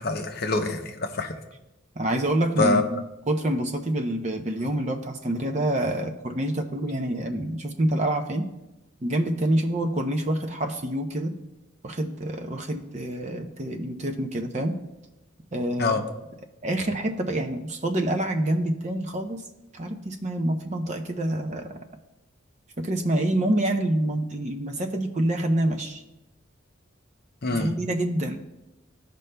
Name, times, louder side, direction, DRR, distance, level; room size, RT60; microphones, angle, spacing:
voice 1, 0.0-1.3 2.6-2.9 15.8-16.0 27.4-27.7, left 3 dB, 50° left, 5 dB, 0.7 m, -25 dB
voice 2, 2.0-3.0 3.3-8.5 9.0-11.3 11.8-14.7 15.5-16.0 16.6-19.4 19.7-21.8 22.8-26.0 27.5-28.4, right 1 dB, 35° right, 5 dB, 0.6 m, -27 dB
15.5 x 5.2 x 2.2 m, 0.96 s
head